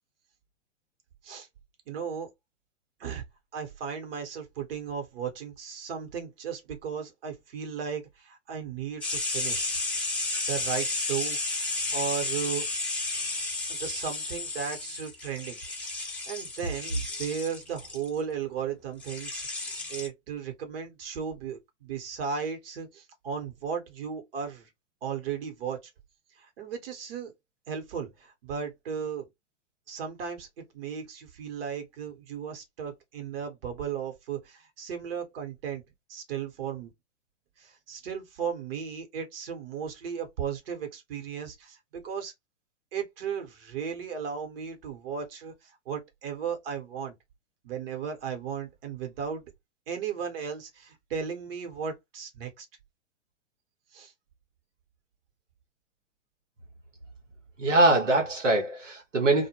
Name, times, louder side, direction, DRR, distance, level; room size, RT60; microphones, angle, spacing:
voice 1, 1.9-2.3 3.0-3.2 3.5-9.7 10.5-12.7 13.7-15.6 16.0-24.7 25.0-25.8 26.4-27.3 27.7-29.3 29.9-30.5 30.7-35.8 36.1-36.9 37.6-42.3 42.9-47.1 47.6-49.4 49.9-52.7 53.9-54.1, right 7 dB, 50° right, 1.0 m, -35 dB
sound 1, 9.0-18.1 19.0-20.1, left 2 dB, 5° left, 0.7 m, -32 dB
voice 2, 57.6-59.5, right 2 dB, 90° right, 0.9 m, -23 dB
2.2 x 2.1 x 2.9 m
figure-of-eight pair, 115°, 36 cm